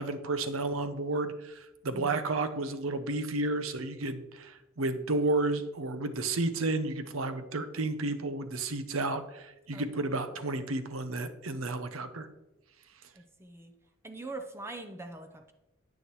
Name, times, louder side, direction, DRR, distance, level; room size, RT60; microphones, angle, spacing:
voice 1, 0.0-12.3, right 2 dB, 80° right, 10 dB, 0.8 m, -32 dB
voice 2, 1.9-2.2 9.7-10.2 13.1-13.7 14.0-15.5, right 2 dB, 15° right, 6 dB, 0.6 m, -43 dB
9.6 x 9.1 x 3.1 m, 0.98 s
head